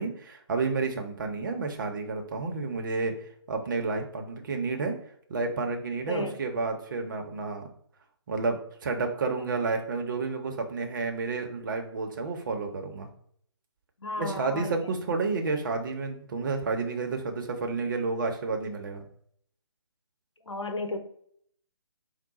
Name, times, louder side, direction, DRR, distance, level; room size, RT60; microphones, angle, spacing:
voice 1, 0.0-3.2 3.5-5.0 5.3-7.7 8.3-13.1 14.2-19.0, right 4 dB, 45° right, 4 dB, 0.8 m, -30 dB
voice 2, 14.0-14.8 20.5-21.0, left 2 dB, 80° left, 5 dB, 0.9 m, -33 dB
4.6 x 2.2 x 4.1 m, 0.65 s
figure-of-eight pair, 145°, 15 cm